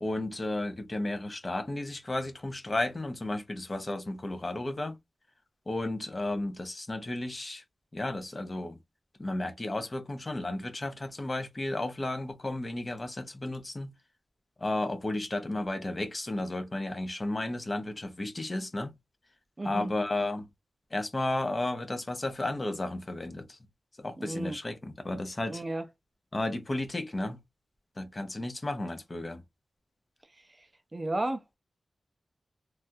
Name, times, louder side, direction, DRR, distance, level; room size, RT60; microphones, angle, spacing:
voice 1, 0.0-5.0 5.7-7.6 7.9-8.8 9.2-13.9 14.6-18.9 19.6-20.4 20.9-23.6 24.0-25.6 26.3-27.4 28.0-29.4, left 2 dB, 30° left, 0.6 m, -33 dB
voice 2, 19.6-19.9 24.2-24.6 25.5-25.8 30.6-30.7 30.9-31.4, right 2 dB, 25° right, 0.4 m, -33 dB
3.1 x 2.3 x 2.6 m
wide cardioid pair, 125°, 0 cm